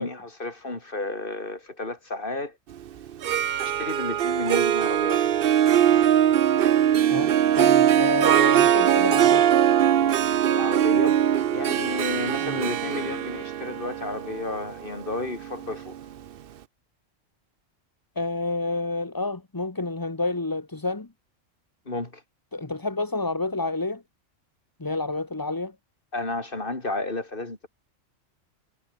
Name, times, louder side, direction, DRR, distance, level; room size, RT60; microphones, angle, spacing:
voice 1, 0.0-2.5 3.6-5.3 10.5-11.2 11.5-16.0 21.9-22.2 26.1-27.7, left 2 dB, 45° left, 3.5 m, -32 dB
Harp, 3.1-16.0, right 10 dB, 55° right, 0.7 m, -21 dB
voice 2, 7.1-9.5 12.4-12.6 18.1-21.1 22.5-24.0 24.8-25.7, left 2 dB, 15° left, 1.1 m, -29 dB
omnidirectional pair, 1.3 m